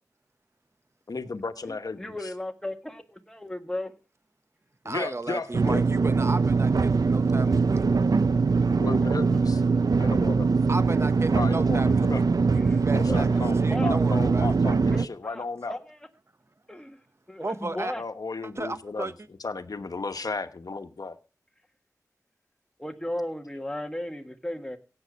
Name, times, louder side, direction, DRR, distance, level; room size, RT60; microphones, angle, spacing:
voice 1, 1.1-2.3 4.8-5.8 8.7-9.6 10.0-10.5 11.3-12.2 12.9-15.8 17.7-19.1 19.4-21.2, left 4 dB, 70° left, 1.1 m, -34 dB
voice 2, 1.7-3.9 12.5-12.8 13.1-13.2 13.7-13.9 14.9-16.0 16.7-17.0 17.3-18.0 22.8-24.8, left 1 dB, 10° left, 1.6 m, -35 dB
voice 3, 4.8-7.9 10.7-12.2 12.5-13.3 13.5-14.6 17.4-17.9 18.6-19.1, right 2 dB, 45° right, 1.0 m, -34 dB
sound 1, 5.5-15.1, right 4 dB, 75° right, 0.6 m, -22 dB
16.5 x 8.0 x 5.2 m
wide cardioid pair, 60°, 6 cm